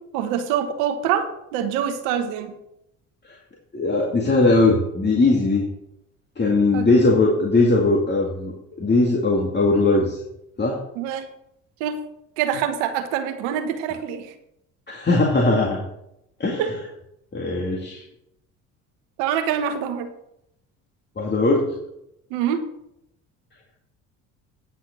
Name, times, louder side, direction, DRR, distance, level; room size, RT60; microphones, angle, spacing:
voice 1, 0.1-2.5 6.7-6.9 11.0-11.3 11.8-12.0 12.4-14.3 16.6-16.7 19.2-20.1 22.3-22.6, right 9 dB, 75° right, 7 dB, 1.2 m, -25 dB
voice 2, 3.7-5.7 6.4-10.2 10.6-10.8 14.9-15.8 16.4-16.7 17.3-18.0 21.2-21.8, left 2 dB, 25° left, -1 dB, 2.2 m, -19 dB
9.8 x 6.3 x 6.4 m, 0.81 s
hypercardioid pair, 65°, 38 cm